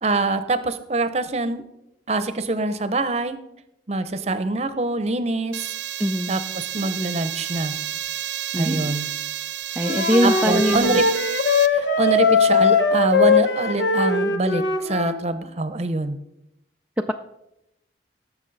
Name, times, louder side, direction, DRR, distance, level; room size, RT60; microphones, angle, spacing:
voice 1, 0.0-1.6 2.1-3.4 3.9-5.7 6.3-7.8 8.5-9.1 10.2-11.1 11.7-16.2, right 2 dB, 35° right, 11 dB, 0.7 m, -24 dB
sound 1, 5.5-11.7, right 12 dB, 75° right, 0.5 m, -30 dB
voice 2, 6.0-6.4 8.5-8.9 9.8-11.0, equal, 10° right, 3 dB, 0.3 m, -22 dB
Wind instrument woodwind instrument, 9.8-15.2, left 4 dB, 75° left, 1.0 m, -20 dB
17.0 x 7.1 x 4.0 m, 0.86 s
head